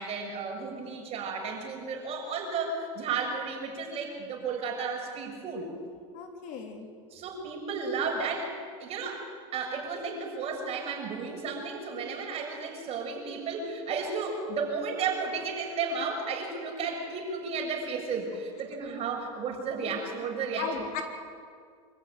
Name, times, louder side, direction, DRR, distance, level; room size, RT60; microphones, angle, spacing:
voice 1, 0.0-5.7 7.1-8.5 8.8-9.3 9.5-20.8, right 4 dB, 40° right, 1 dB, 6.5 m, -33 dB
voice 2, 6.1-6.9 20.6-21.0, left 5 dB, 50° left, 4 dB, 3.5 m, -36 dB
25.5 x 15.0 x 9.4 m, 2.1 s
supercardioid pair, 125°, 17 cm